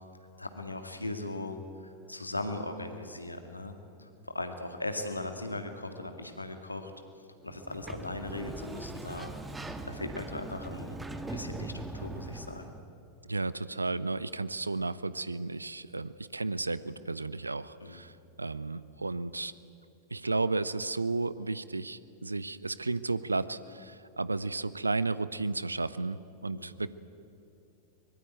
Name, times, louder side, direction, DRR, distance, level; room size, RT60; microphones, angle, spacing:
voice 1, 0.4-6.9 7.4-12.7 17.8-18.0 26.5-26.8, left 2 dB, 85° left, 6 dB, 2.0 m, -39 dB
Sliding door, 7.5-12.8, right 2 dB, 10° right, 1.6 m, -41 dB
voice 2, 13.3-18.1 18.4-19.5 20.1-26.9, right 3 dB, 80° right, 17 dB, 0.6 m, -33 dB
23.5 x 21.0 x 9.3 m, 2.7 s
figure-of-eight pair, 90°, 0 cm